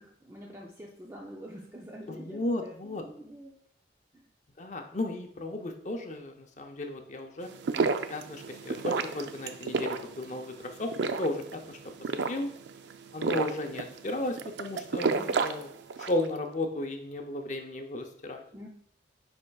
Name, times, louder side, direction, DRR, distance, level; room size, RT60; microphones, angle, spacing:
voice 1, 0.0-3.6 4.1-4.3 15.1-15.4 18.5-18.7, equal, 15° right, -2 dB, 0.5 m, -46 dB
voice 2, 2.1-3.0 4.6-7.5 8.1-11.8 12.2-12.5 13.1-15.7 16.0-18.4, left 1 dB, 40° left, 4 dB, 0.6 m, -34 dB
sound 1, 7.4-16.3, right 4 dB, 75° right, 0.4 m, -32 dB
9.7 x 4.4 x 2.3 m, 0.67 s
head